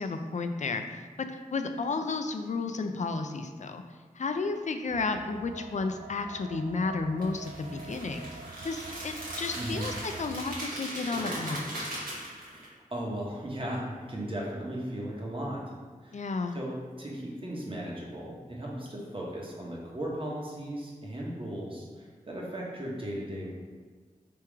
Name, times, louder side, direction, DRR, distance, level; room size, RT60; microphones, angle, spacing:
voice 1, 0.0-3.8 4.1-8.3 8.6-11.9 16.1-16.6, left 3 dB, 55° left, 7 dB, 0.4 m, -32 dB
sound 1, 4.9-10.4, right 4 dB, 55° right, 0.4 m, -46 dB
sound 2, 7.2-12.7, right 1 dB, 80° right, 1.3 m, -39 dB
voice 2, 9.5-9.9 12.4-15.6 16.0-16.2 16.5-23.5, right 1 dB, 40° right, -3 dB, 1.1 m, -37 dB
3.5 x 3.0 x 4.7 m, 1.5 s
wide cardioid pair, 65°, 14 cm